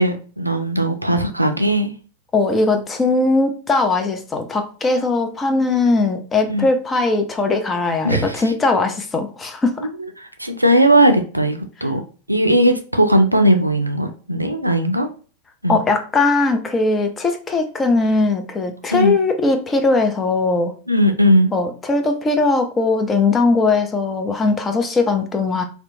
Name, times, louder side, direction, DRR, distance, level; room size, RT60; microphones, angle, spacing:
voice 1, 0.0-1.9 6.5-6.6 8.0-8.4 10.2-12.0 12.3-15.1 15.6-15.8 18.9-19.1 20.9-21.5, right 1 dB, 85° right, 6 dB, 0.4 m, -17 dB
voice 2, 2.3-9.8 15.7-20.7 21.5-25.6, left 3 dB, 20° left, 5 dB, 0.5 m, -19 dB
2.8 x 2.1 x 2.7 m, 0.38 s
figure-of-eight pair, 90°, 0 cm